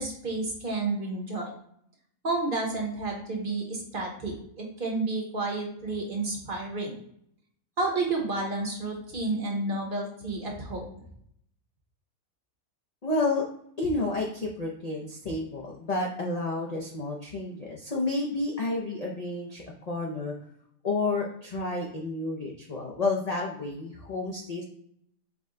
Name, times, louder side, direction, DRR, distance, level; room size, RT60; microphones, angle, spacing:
voice 1, 0.0-1.5 2.2-6.9 7.8-10.8, right 2 dB, 45° right, 0 dB, 0.9 m, -31 dB
voice 2, 13.0-13.4 13.8-20.3 20.8-24.6, left 2 dB, 60° left, -2 dB, 0.4 m, -30 dB
4.8 x 2.1 x 3.7 m, 0.69 s
omnidirectional pair, 1.5 m